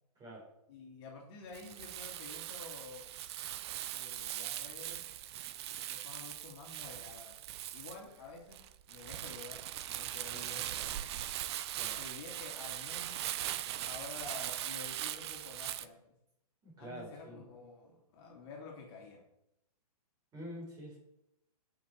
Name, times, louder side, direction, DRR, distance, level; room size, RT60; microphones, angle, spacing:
voice 1, 0.7-3.1 3.9-5.2 5.9-7.4 7.7-8.6 8.9-11.1 12.0-16.0 16.8-19.2, left 4 dB, 40° left, 0 dB, 2.6 m, -50 dB
Crumpling crinkling, 1.5-15.9, right 12 dB, 40° right, 0.6 m, -40 dB
voice 2, 16.6-17.4 20.3-21.0, equal, 20° right, -2 dB, 4.4 m, -46 dB
18.0 x 6.0 x 4.6 m, 0.82 s
hypercardioid pair, 145°, 20 cm